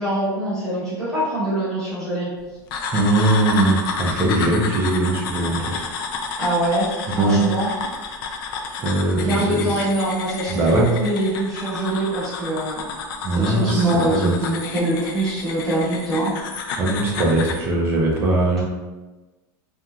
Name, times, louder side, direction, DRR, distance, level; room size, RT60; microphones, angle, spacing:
voice 1, 0.0-2.3 6.4-7.7 9.1-12.9 13.3-16.3, right 1 dB, 5° left, -13 dB, 1.1 m, -23 dB
sound 1, 2.7-17.6, left 5 dB, 70° left, 0.4 m, -30 dB
voice 2, 2.9-5.8 7.1-7.4 8.7-9.7 10.5-10.9 13.2-14.3 16.8-18.6, right 2 dB, 20° right, -2 dB, 0.4 m, -20 dB
2.9 x 2.4 x 2.3 m, 1.2 s
supercardioid pair, 170°, 12 cm